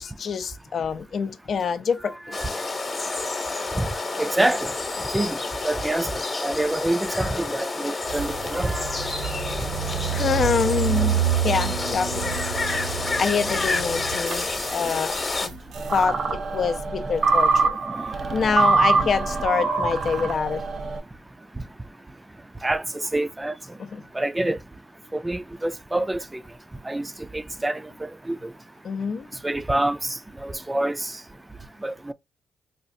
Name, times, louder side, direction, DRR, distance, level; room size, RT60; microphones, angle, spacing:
voice 1, 0.0-2.4 10.1-12.4 13.2-15.2 15.4-15.6 15.9-17.8 18.3-20.6 23.9-24.0 28.8-29.3, left 6 dB, 55° left, 0.5 m, -26 dB
voice 2, 2.0-2.6 3.7-3.9 4.2-4.7 5.0-6.1 6.4-9.1 11.5-11.6 17.8-19.9 20.2-20.3 22.6-23.8 24.1-24.6 25.1-26.4 26.8-28.5 29.4-31.2 31.8-32.1, right 1 dB, 15° right, 0.4 m, -28 dB
sound 1, 2.3-15.5, left 3 dB, 30° left, 1.0 m, -29 dB
sound 2, 8.1-16.0, right 10 dB, 75° right, 1.0 m, -29 dB
sound 3, 15.7-21.0, right 4 dB, 55° right, 0.8 m, -24 dB
4.2 x 2.4 x 2.6 m
supercardioid pair, 65°, 0 cm